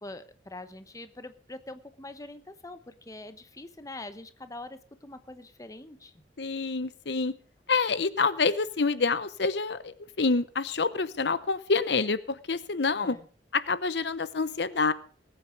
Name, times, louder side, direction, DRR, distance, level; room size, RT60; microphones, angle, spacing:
voice 1, 0.0-6.1 13.0-13.3, left 2 dB, 20° left, 10 dB, 1.0 m, -44 dB
voice 2, 6.4-7.3 7.7-13.2 13.5-14.9, left 4 dB, 70° left, 15 dB, 0.8 m, -27 dB
20.0 x 9.0 x 5.2 m, 0.40 s
head